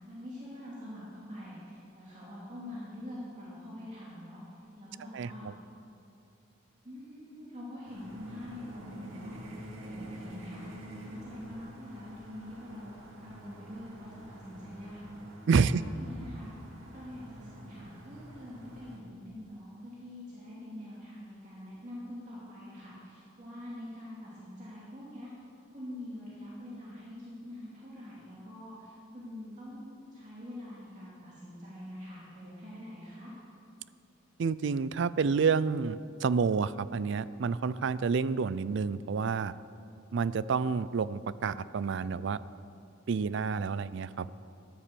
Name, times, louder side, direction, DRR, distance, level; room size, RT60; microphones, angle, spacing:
voice 1, 0.1-5.5 6.8-10.6 11.0-12.9 13.2-15.0 15.6-16.5 16.9-25.3 25.7-33.3, left 1 dB, 40° right, -7 dB, 2.6 m, -45 dB
voice 2, 5.1-5.5 15.5-15.8 34.4-39.5 40.1-42.4 43.1-44.3, right 5 dB, 65° right, 17 dB, 0.4 m, -29 dB
sound 1, 7.9-19.0, right 1 dB, 90° right, 2.1 m, -48 dB
13.0 x 10.5 x 6.9 m, 2.8 s
head